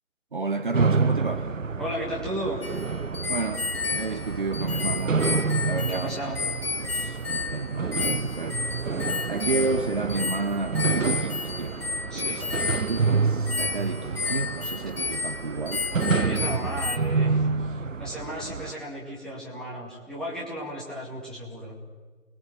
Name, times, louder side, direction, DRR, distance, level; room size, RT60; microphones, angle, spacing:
voice 1, 0.3-1.5 3.3-5.2 5.6-6.2 6.8-8.7 9.3-11.8 12.1-12.5 12.9-15.9, right 3 dB, 35° right, 1.3 m, -31 dB
sound 1, 0.7-18.7, right 4 dB, 65° right, 0.9 m, -28 dB
voice 2, 1.8-2.6 5.9-6.4 12.1-12.4 15.9-21.8, equal, ahead, 2.3 m, -35 dB
sound 2, 2.6-17.0, left 5 dB, 45° left, 1.8 m, -32 dB
28.5 x 21.5 x 7.8 m
figure-of-eight pair, 155°, 42 cm